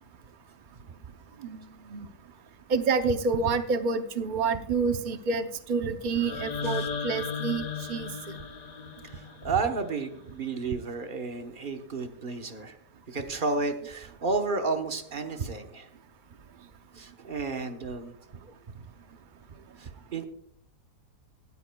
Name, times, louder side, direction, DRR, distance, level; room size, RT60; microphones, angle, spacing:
voice 1, 2.7-8.1, right 4 dB, 80° right, 8 dB, 0.4 m, -28 dB
sound 1, 6.1-10.2, left 6 dB, 75° left, 0.3 m, -36 dB
voice 2, 9.0-12.8 13.1-15.9 16.9-18.1 19.8-20.3, right 4 dB, 35° right, 5 dB, 1.0 m, -32 dB
18.0 x 13.0 x 2.3 m, 0.72 s
omnidirectional pair, 1.8 m